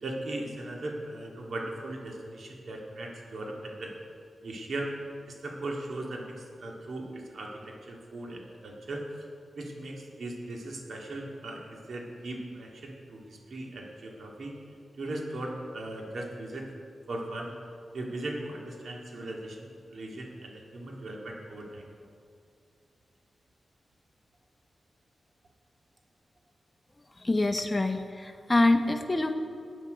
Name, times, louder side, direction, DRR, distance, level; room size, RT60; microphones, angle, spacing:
voice 1, 0.0-3.9 4.4-4.9 5.3-9.0 9.6-14.5 15.0-16.6 17.1-17.5 17.9-21.9, right 1 dB, 70° right, 0 dB, 2.1 m, -38 dB
voice 2, 27.2-29.3, left 2 dB, 25° left, 6 dB, 1.0 m, -25 dB
15.5 x 9.3 x 5.2 m, 2.3 s
cardioid pair, 75°, 0 cm